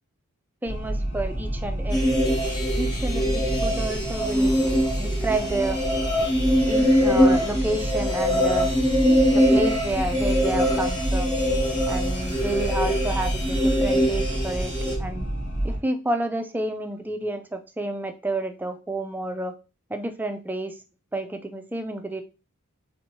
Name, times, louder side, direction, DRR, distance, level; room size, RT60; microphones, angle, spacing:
voice 1, 0.6-2.4 2.8-4.5 5.0-5.8 6.2-6.3 6.7-8.7 9.0-11.4 11.9-15.3 15.6-19.5 19.9-20.8 21.1-22.2, right 2 dB, 10° right, 7 dB, 0.3 m, -30 dB
sound 1, 0.7-15.8, right 1 dB, 85° left, 1.8 m, -29 dB
sound 2, 1.9-15.0, equal, 20° left, 0.9 m, -23 dB
3.4 x 2.9 x 2.8 m, 0.31 s
head